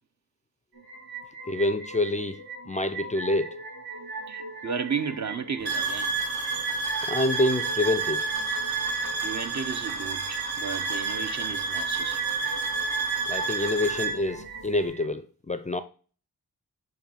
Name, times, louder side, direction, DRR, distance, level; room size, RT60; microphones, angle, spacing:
sound 1, 0.7-15.1, right 3 dB, 70° right, 1.8 m, -39 dB
voice 1, 1.5-3.6 7.0-8.2 13.3-15.8, left 2 dB, 20° left, 0.4 m, -27 dB
voice 2, 4.3-6.2 9.2-12.3, right 6 dB, 45° right, 0.7 m, -33 dB
sound 2, 5.6-14.2, right 4 dB, 90° right, 1.4 m, -29 dB
7.1 x 2.6 x 5.3 m
cardioid pair, 65°, 37 cm